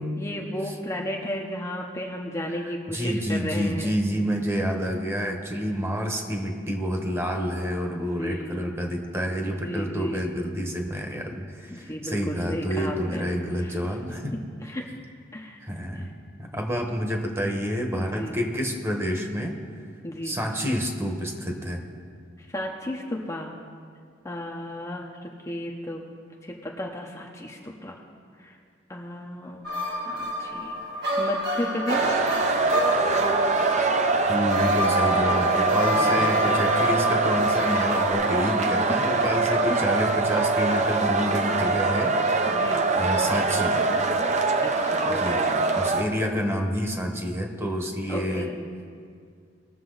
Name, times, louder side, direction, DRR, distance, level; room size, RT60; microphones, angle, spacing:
voice 1, 0.2-4.0 8.0-8.7 9.5-10.3 11.7-13.3 13.6-13.8 14.3-14.8 15.3-15.6 15.9-16.1 18.0-18.4 20.0-20.4 22.4-23.5 24.2-26.0 26.4-28.0 28.4-28.6 28.9-29.7 30.1-30.8 31.2-32.2 35.9-36.3 39.1-39.8 42.5-42.9 44.6-45.8 48.1-48.6, left 1 dB, 15° left, -1 dB, 0.8 m, -34 dB
voice 2, 2.9-14.3 15.6-16.1 16.4-19.6 20.2-21.8 34.3-42.1 43.0-43.8 45.1-45.4 45.7-48.5, equal, 15° right, 2 dB, 1.2 m, -28 dB
sound 1, 29.6-38.1, equal, 60° right, 1.7 m, -28 dB
sound 2, 31.9-46.0, right 3 dB, 40° right, 0.7 m, -23 dB
20.0 x 6.9 x 4.0 m, 2.1 s
head